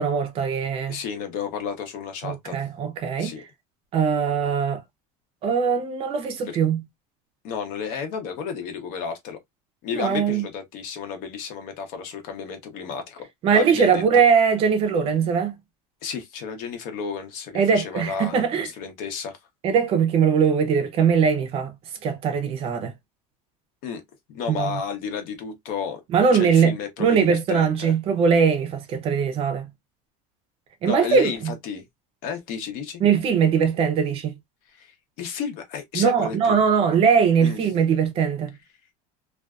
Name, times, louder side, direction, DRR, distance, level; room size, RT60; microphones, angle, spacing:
voice 1, 0.0-1.0 2.2-3.3 3.9-4.8 5.4-6.8 9.9-10.5 13.4-15.6 17.5-18.7 19.6-21.7 22.0-22.9 24.5-24.7 26.1-29.7 30.8-31.5 33.0-34.3 35.9-38.5, right 6 dB, 35° right, 0.6 m, -21 dB
voice 2, 0.9-2.6 3.2-3.4 6.5-6.6 7.4-9.4 9.8-14.2 16.0-19.4 23.8-24.0 24.3-26.0 26.3-27.9 30.8-31.9 32.2-33.0 34.7-36.6 37.4-37.6, left 6 dB, 50° left, 0.8 m, -32 dB
2.5 x 2.3 x 2.3 m
cardioid pair, 165°, 17 cm